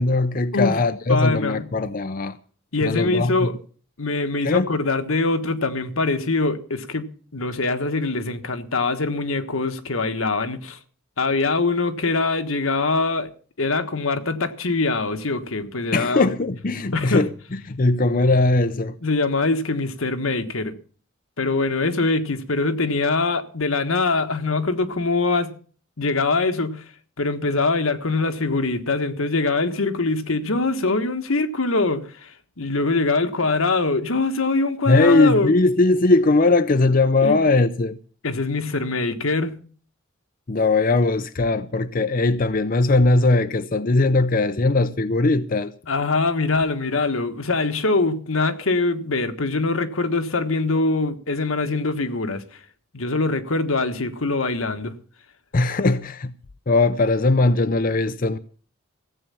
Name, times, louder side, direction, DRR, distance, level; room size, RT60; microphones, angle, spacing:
voice 1, 0.0-2.4 2.8-3.5 4.4-4.7 15.9-19.0 34.9-38.0 40.5-45.7 55.5-56.3 56.7-58.4, left 2 dB, 40° left, 0.6 m, -19 dB
voice 2, 1.1-1.6 2.7-3.5 4.0-10.8 11.2-13.3 13.6-16.3 16.9-17.3 19.0-20.7 21.4-25.5 26.0-26.8 27.2-35.5 37.2-37.4 38.2-39.6 45.9-52.4 52.9-54.9, left 3 dB, 85° left, 1.5 m, -23 dB
15.5 x 8.5 x 7.0 m
head